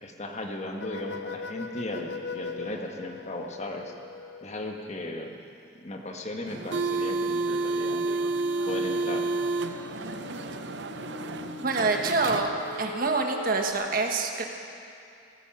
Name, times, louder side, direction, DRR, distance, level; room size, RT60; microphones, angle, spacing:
voice 1, 0.0-3.9 4.4-5.3 5.8-8.1 8.7-9.3, left 1 dB, 40° left, 2 dB, 1.4 m, -36 dB
sound 1, 0.8-4.7 8.0-13.7, left 4 dB, 75° left, 0.7 m, -41 dB
sound 2, 6.5-12.9, right 3 dB, 85° right, 0.7 m, -30 dB
voice 2, 11.6-14.4, right 3 dB, 55° right, 3 dB, 1.4 m, -26 dB
16.5 x 14.5 x 6.0 m, 2.5 s
head